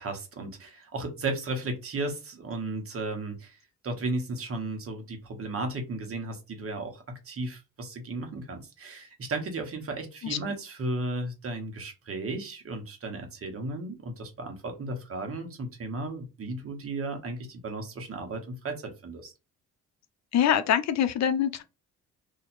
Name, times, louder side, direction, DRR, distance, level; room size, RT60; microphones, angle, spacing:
voice 1, 0.0-3.6 3.8-19.3, right 2 dB, 50° right, 1.3 m, -35 dB
voice 2, 20.3-21.6, left 9 dB, 65° left, 0.6 m, -24 dB
2.8 x 2.8 x 4.2 m
cardioid pair, 90°, 30 cm